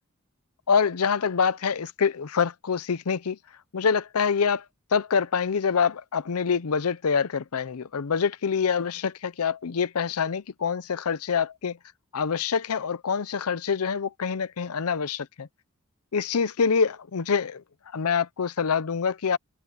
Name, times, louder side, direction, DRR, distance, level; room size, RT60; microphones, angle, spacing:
voice 1, 0.7-3.4 3.7-4.6 4.9-11.8 12.1-15.5 16.1-17.6 17.9-19.4, left 6 dB, 85° left, 0.6 m, -25 dB
head